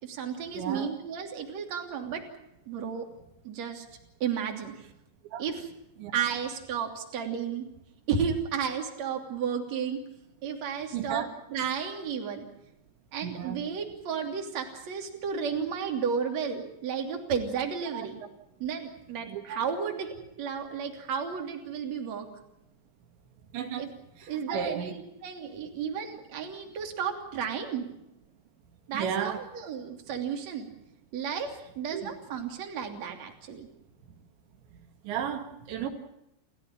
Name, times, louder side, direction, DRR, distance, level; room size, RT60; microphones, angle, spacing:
voice 1, 0.0-2.2 2.7-3.1 3.4-3.9 4.2-4.7 5.4-5.7 6.1-7.7 8.1-10.0 10.4-12.4 13.1-18.2 18.6-22.3 23.8-23.9 24.3-27.9 28.9-30.7 31.1-33.7, right 7 dB, 40° right, 3 dB, 3.8 m, -33 dB
voice 2, 0.5-0.9 5.3-5.4 6.0-6.1 10.9-11.3 13.2-13.6 17.9-18.1 19.3-19.6 23.5-23.9 24.2-24.9 28.9-29.4 31.9-32.1 35.0-35.9, right 8 dB, 80° right, 5 dB, 4.2 m, -33 dB
29.0 x 15.0 x 8.9 m, 0.84 s
omnidirectional pair, 5.1 m